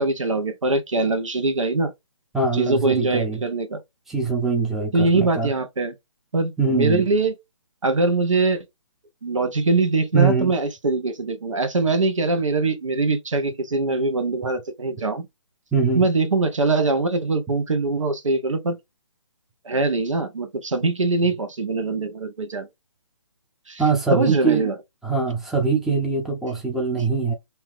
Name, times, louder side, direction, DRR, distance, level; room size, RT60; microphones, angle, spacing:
voice 1, 0.0-1.9 2.5-3.8 4.9-5.9 6.3-7.3 7.8-8.6 9.2-15.3 15.9-18.8 19.6-22.7 23.7-23.8 24.1-24.7, right 3 dB, 85° right, 1.0 m, -22 dB
voice 2, 2.3-3.4 4.1-5.5 6.6-7.0 10.1-10.5 15.7-16.1 23.8-24.7 25.0-27.3, right 4 dB, ahead, 0.6 m, -22 dB
2.8 x 2.7 x 3.6 m
hypercardioid pair, 150°, 16 cm